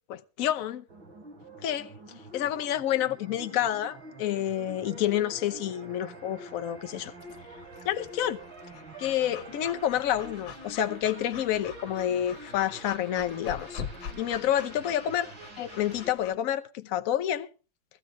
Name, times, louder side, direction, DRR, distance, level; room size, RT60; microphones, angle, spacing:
voice 1, 0.1-0.8 1.6-1.9 2.3-7.1 7.8-8.4 9.0-13.8 14.2-15.3 15.6-17.5, left 11 dB, 55° left, 1.0 m, -29 dB
sound 1, 0.9-16.1, right 2 dB, 85° right, 4.0 m, -46 dB
sound 2, 3.1-10.2, right 5 dB, 65° right, 6.3 m, -57 dB
Breathing / Dog, 7.2-16.4, left 7 dB, 75° left, 1.9 m, -45 dB
15.0 x 14.0 x 3.7 m
omnidirectional pair, 2.1 m